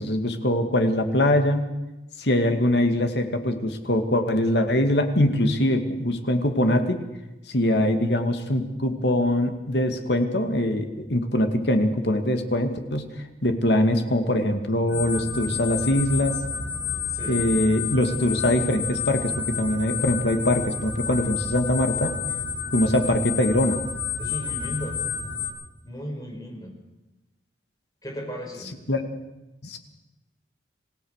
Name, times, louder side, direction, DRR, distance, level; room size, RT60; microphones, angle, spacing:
voice 1, 0.0-1.6 2.2-7.0 7.5-13.2 13.4-16.4 17.3-22.2 22.7-23.8 28.9-29.0 29.6-29.8, left 1 dB, 75° left, 6 dB, 2.3 m, -23 dB
sound 1, 14.9-25.5, left 6 dB, 55° left, 7.7 m, -30 dB
voice 2, 24.2-25.0 25.8-26.7 28.0-28.7, equal, 20° left, 2 dB, 5.3 m, -35 dB
27.0 x 17.5 x 6.6 m, 1.0 s
head